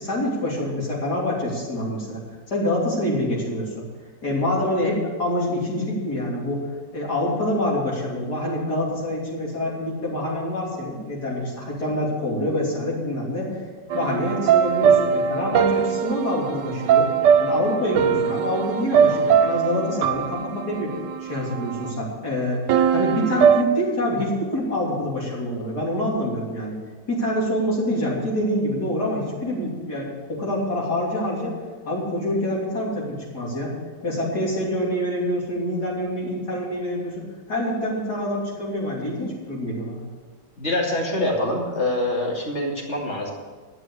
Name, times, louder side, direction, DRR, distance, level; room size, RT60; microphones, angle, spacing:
voice 1, 0.0-2.2 2.5-3.9 4.2-6.6 6.9-13.5 13.9-17.1 17.4-20.9 21.2-22.6 22.9-26.8 27.1-31.5 31.9-33.7 34.0-40.0, left 1 dB, 60° left, -5 dB, 3.7 m, -26 dB
sound 1, 13.9-21.9 22.7-23.6, right 7 dB, 80° right, 1.3 m, -21 dB
voice 2, 40.6-43.3, left 1 dB, 40° left, -1 dB, 2.8 m, -25 dB
12.0 x 7.9 x 8.2 m, 1.4 s
omnidirectional pair, 2.0 m